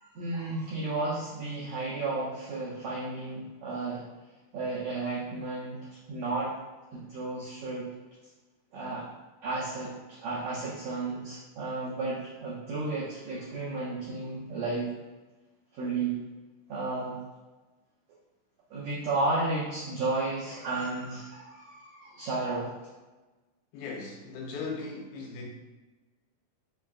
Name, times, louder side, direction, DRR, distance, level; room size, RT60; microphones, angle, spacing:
voice 1, 0.0-4.0 4.5-6.5 6.9-7.9 8.7-9.1 9.4-14.9 15.7-16.2 16.7-17.2 18.7-22.7, right 3 dB, 90° right, 1.5 m, -33 dB
voice 2, 23.7-25.5, left 4 dB, 90° left, 2.5 m, -38 dB
5.5 x 2.2 x 2.4 m
omnidirectional pair, 4.0 m